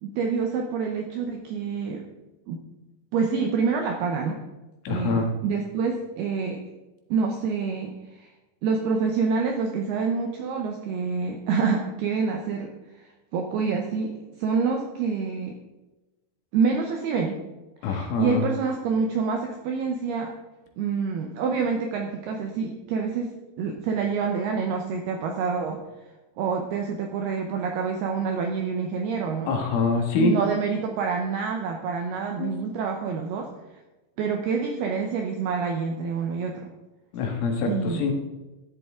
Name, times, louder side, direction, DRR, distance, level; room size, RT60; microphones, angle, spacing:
voice 1, 0.0-2.0 2.5-2.6 3.1-4.4 4.9-6.6 7.1-8.3 8.6-15.6 16.5-17.4 17.8-20.3 20.8-23.3 23.6-25.8 26.4-29.6 30.2-33.5 34.2-36.7 37.6-38.1, right 5 dB, 80° right, 3 dB, 2.3 m, -27 dB
voice 2, 4.9-5.3 17.8-18.4 29.5-30.4 32.4-32.5 37.1-38.1, left 4 dB, 75° left, 3 dB, 4.1 m, -25 dB
13.5 x 10.5 x 3.7 m, 1.1 s
omnidirectional pair, 5.7 m